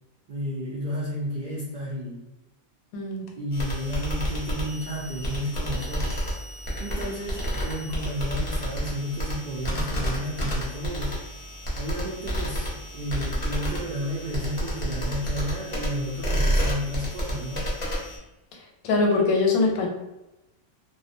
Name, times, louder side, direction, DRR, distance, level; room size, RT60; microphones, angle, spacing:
voice 1, 0.3-2.3 3.4-6.2 6.8-11.2 11.8-17.7, equal, 85° right, -5 dB, 0.4 m, -32 dB
voice 2, 2.9-3.2 18.8-19.9, left 3 dB, 90° left, 1 dB, 1.0 m, -22 dB
sound 1, 3.5-18.2, equal, 35° left, 0.5 m, -30 dB
2.5 x 2.1 x 2.5 m, 0.95 s
omnidirectional pair, 1.4 m